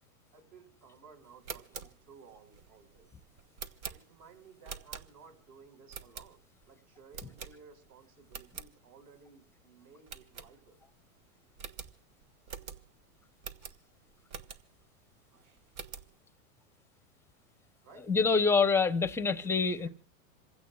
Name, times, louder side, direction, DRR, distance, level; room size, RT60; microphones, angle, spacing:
voice 1, 0.3-3.1 3.9-6.4 6.7-10.8 17.8-18.1 19.4-19.9, right 5 dB, 55° right, 5.2 m, -56 dB
sound 1, 1.3-5.4 5.9-6.6 7.1-7.9 8.2-8.7 9.2-9.3 9.5-9.6 10.1-11.0 11.2-11.3 11.6-14.9 15.3-16.1, right 6 dB, 80° right, 1.5 m, -46 dB
voice 2, 18.1-19.9, left 4 dB, 5° left, 0.7 m, -26 dB
27.5 x 16.0 x 2.3 m
hypercardioid pair, 130°, 42 cm